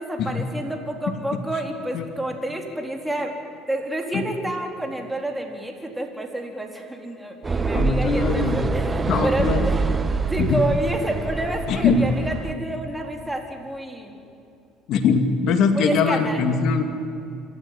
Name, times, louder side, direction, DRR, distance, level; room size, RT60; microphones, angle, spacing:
voice 1, 0.0-3.3 3.7-9.9 10.3-14.2 15.7-16.4, right 1 dB, 10° right, 3 dB, 4.0 m, -29 dB
sound 1, 7.4-12.5, right 4 dB, 25° right, 1.3 m, -25 dB
voice 2, 7.7-8.6 9.1-9.6 10.4-10.6 11.7-12.0 14.9-16.8, left 5 dB, 60° left, 7 dB, 2.3 m, -21 dB
27.0 x 13.0 x 9.9 m, 2.6 s
hypercardioid pair, 70°, 0 cm